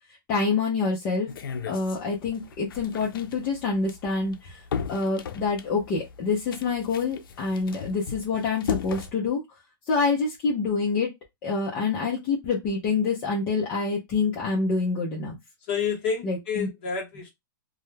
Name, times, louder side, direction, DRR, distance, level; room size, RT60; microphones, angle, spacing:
voice 1, 0.3-1.3 1.7-4.6 4.9-9.4 9.9-11.1 11.4-15.4 16.2-16.7, left 4 dB, 15° left, 0.4 m, -26 dB
sound 1, 1.3-9.1, left 7 dB, 85° left, 0.4 m, -36 dB
voice 2, 15.6-17.3, left 6 dB, 30° left, 0.9 m, -29 dB
2.2 x 2.0 x 3.1 m
hypercardioid pair, 180°, 11 cm